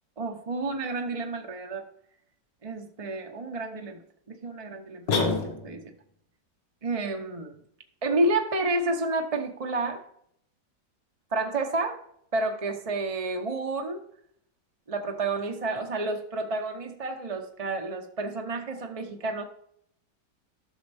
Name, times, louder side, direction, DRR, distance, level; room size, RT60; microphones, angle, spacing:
voice 1, 0.2-1.9 2.6-4.0 4.3-5.2 5.6-5.9 6.8-7.6 8.0-10.0 11.3-12.0 12.3-14.0 14.9-19.4, right 2 dB, 30° right, 0.7 m, -30 dB
sound 1, 5.1-6.0, left 3 dB, 80° left, 2.2 m, -27 dB
12.0 x 6.5 x 3.5 m
omnidirectional pair, 1.9 m